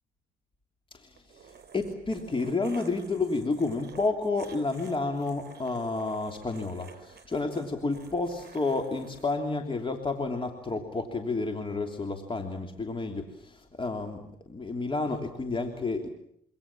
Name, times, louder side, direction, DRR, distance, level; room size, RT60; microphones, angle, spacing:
voice 1, 0.9-14.2 14.5-16.1, left 3 dB, 25° left, 5 dB, 3.2 m, -31 dB
sound 1, 1.2-9.3, right 6 dB, 55° right, 4.7 m, -50 dB
27.0 x 25.0 x 7.4 m, 0.70 s
cardioid pair, 90°, 20 cm